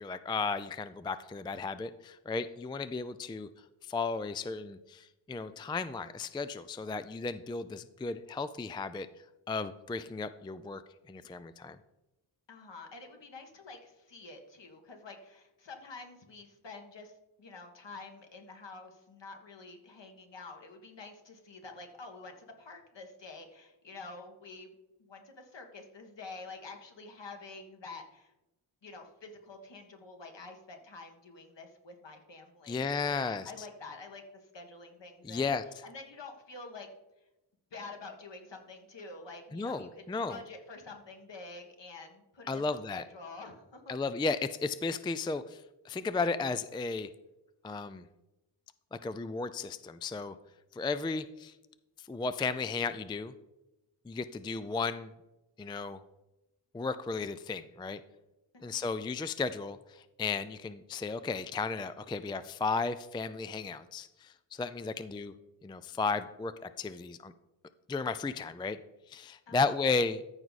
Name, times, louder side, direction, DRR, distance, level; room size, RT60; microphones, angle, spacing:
voice 1, 0.0-3.5 3.8-9.1 9.5-10.8 11.1-11.8 32.7-33.7 35.2-35.6 39.5-40.4 42.5-43.0 43.9-47.1 47.6-48.0 48.9-50.4 50.7-51.5 52.0-53.3 54.1-55.1 55.6-56.0 56.7-58.0 58.6-65.3 65.6-66.5 66.8-67.3 67.9-68.8 69.1-70.2, left 4 dB, 10° left, 12 dB, 0.3 m, -34 dB
voice 2, 12.5-24.7 25.0-28.3 28.8-35.4 35.8-36.9 37.7-43.9 58.5-58.8 69.5-69.7, left 3 dB, 60° left, 3 dB, 1.7 m, -48 dB
14.0 x 4.7 x 4.1 m, 0.95 s
cardioid pair, 55°, 49 cm